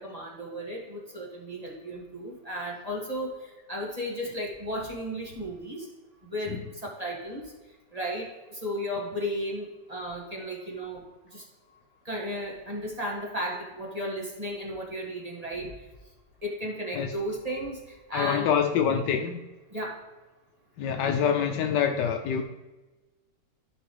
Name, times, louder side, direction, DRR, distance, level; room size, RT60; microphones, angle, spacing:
voice 1, 0.0-3.3 3.7-5.9 6.2-6.5 6.8-7.4 7.9-11.0 11.3-11.4 12.1-15.7 16.4-17.8 18.1-18.5 19.7-20.0, equal, 20° right, -3 dB, 1.8 m, -34 dB
voice 2, 18.1-19.4 20.8-22.4, left 8 dB, 80° left, 5 dB, 1.2 m, -26 dB
13.0 x 5.2 x 3.3 m, 1.2 s
omnidirectional pair, 1.9 m